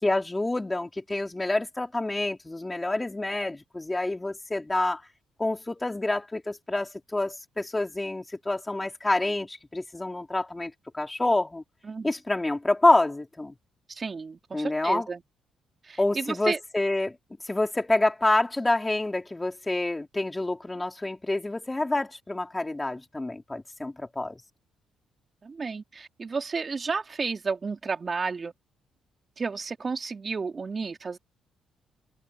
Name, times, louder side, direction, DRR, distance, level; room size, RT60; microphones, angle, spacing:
voice 1, 0.0-5.0 5.4-11.6 12.0-13.5 14.5-15.1 16.0-17.2 17.4-24.4, left 2 dB, 15° left, 3.7 m, -27 dB
voice 2, 13.9-15.2 15.8-16.6 25.4-28.5 29.4-31.2, right 4 dB, 35° right, 3.1 m, -32 dB
open air
cardioid pair, 90°, 0 cm